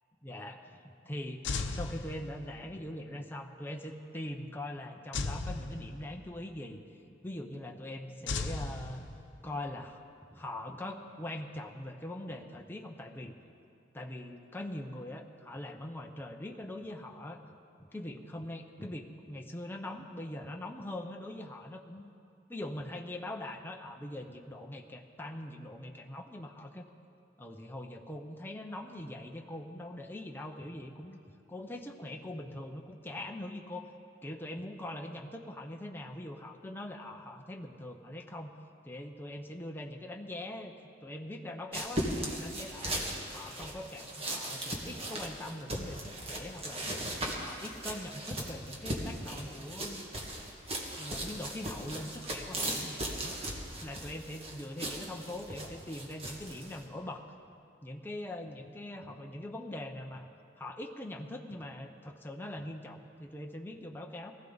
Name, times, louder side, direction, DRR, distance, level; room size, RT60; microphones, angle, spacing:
voice 1, 0.2-6.8 7.2-9.0 9.4-10.0 10.3-13.3 13.9-17.4 17.9-22.1 22.5-26.9 27.4-31.2 31.5-33.9 34.2-38.5 38.8-40.7 41.0-43.0 43.3-46.9 47.3-50.0 51.0-53.3 53.8-57.3 57.8-60.3 60.5-64.3, left 1 dB, 10° left, 2 dB, 0.7 m, -42 dB
sound 1, 1.4-2.7 5.1-6.4 8.3-9.6, left 3 dB, 75° left, 0.7 m, -36 dB
sound 2, 41.7-56.8, right 1 dB, 30° right, 1.7 m, -38 dB
19.5 x 14.5 x 4.0 m, 2.5 s
head